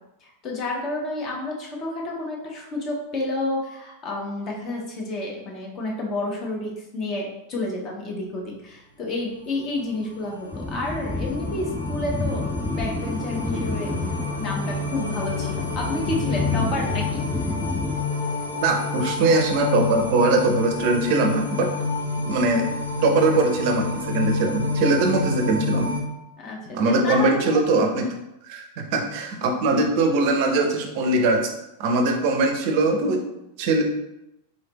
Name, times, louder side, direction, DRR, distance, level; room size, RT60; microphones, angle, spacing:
voice 1, 0.2-13.9 14.4-17.0 26.4-27.6, left 2 dB, 35° left, -1 dB, 1.0 m, -30 dB
sound 1, 9.8-26.0, left 3 dB, 90° left, 0.7 m, -29 dB
sound 2, 10.5-18.0, left 2 dB, 10° left, 0.3 m, -29 dB
voice 2, 18.6-21.7 22.2-22.7 23.0-25.9 26.7-28.1 28.5-31.5 31.8-33.2 33.6-33.8, right 2 dB, 45° right, 4 dB, 0.5 m, -21 dB
4.0 x 3.2 x 3.0 m, 0.89 s
figure-of-eight pair, 90°, 0 cm